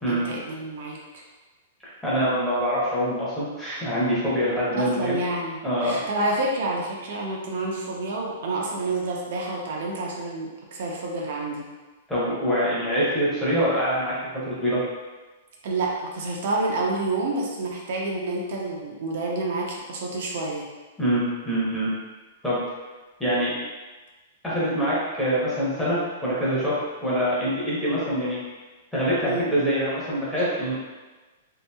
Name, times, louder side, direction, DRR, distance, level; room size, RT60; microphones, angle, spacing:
voice 1, 0.1-1.2 4.7-11.7 15.6-20.7 29.3-29.5 30.4-30.5, right 2 dB, 60° right, -2 dB, 0.5 m, -29 dB
voice 2, 2.0-5.2 5.6-6.0 12.1-14.8 21.0-21.9 22.4-22.6 23.2-23.5 24.4-28.4 28.9-30.7, equal, 5° left, -10 dB, 0.7 m, -24 dB
2.7 x 2.5 x 2.2 m, 1.2 s
hypercardioid pair, 165°, 0 cm